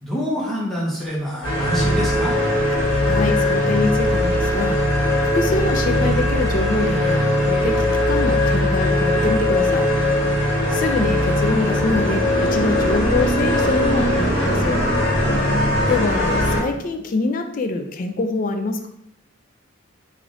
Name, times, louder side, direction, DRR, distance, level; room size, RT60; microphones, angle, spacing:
voice 1, 0.0-2.4 10.7-10.8, equal, ahead, -5 dB, 0.8 m, -26 dB
sound 1, 1.4-16.6, left 1 dB, 75° left, 1.2 m, -20 dB
voice 2, 2.7-4.8 5.3-9.9 10.3-14.8 15.4-15.6 15.9-18.9, left 3 dB, 40° left, 6 dB, 0.3 m, -25 dB
3.3 x 2.5 x 3.7 m, 0.76 s
head